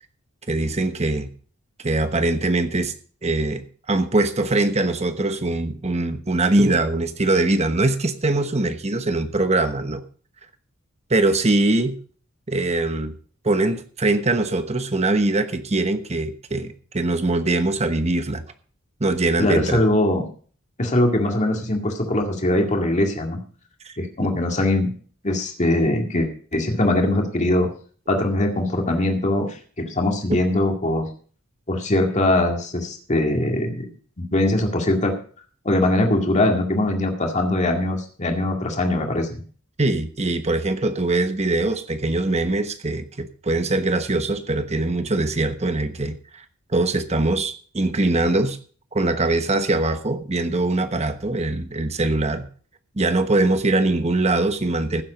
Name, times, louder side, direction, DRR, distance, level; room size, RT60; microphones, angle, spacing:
voice 1, 0.5-1.3 1.8-2.9 3.2-10.0 11.1-11.9 12.5-13.1 13.4-18.4 19.0-19.8 23.8-23.9 24.2-24.3 39.8-46.1 46.7-48.6 48.9-52.5 53.0-55.0, right 2 dB, 30° right, 1.1 m, -22 dB
voice 2, 19.4-20.3 20.8-23.4 24.0-24.9 25.2-27.7 28.1-31.1 31.7-33.9 34.2-35.2 35.7-39.4, left 1 dB, 35° left, 2.1 m, -21 dB
15.5 x 7.6 x 5.1 m
head